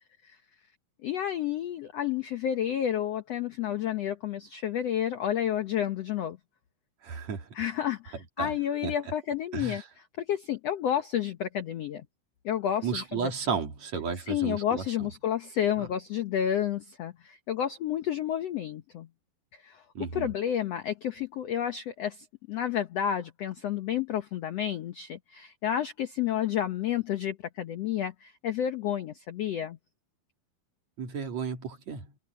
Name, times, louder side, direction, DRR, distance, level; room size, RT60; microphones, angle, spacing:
voice 1, 1.0-6.4 7.5-9.8 10.2-12.0 12.4-13.3 14.3-19.1 19.5-19.8 20.1-29.8, left 10 dB, 75° left, 1.4 m, -30 dB
voice 2, 7.0-7.5 8.4-8.5 8.8-8.9 9.5-9.8 12.8-14.8 20.0-20.3 31.0-32.1, right 6 dB, 50° right, 3.5 m, -33 dB
omnidirectional pair, 4.3 m